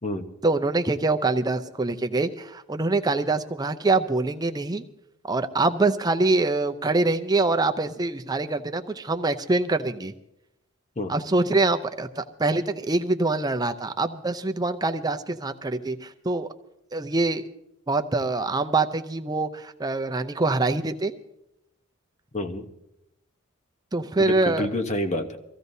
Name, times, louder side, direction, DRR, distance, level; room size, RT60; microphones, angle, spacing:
voice 1, 0.4-4.8 5.2-10.1 11.1-16.5 16.9-17.4 17.9-21.1 23.9-24.7, right 3 dB, 20° right, 7 dB, 0.6 m, -24 dB
voice 2, 22.3-22.7 24.2-25.4, left 1 dB, 30° left, 7 dB, 1.0 m, -28 dB
24.0 x 15.5 x 2.7 m, 0.86 s
head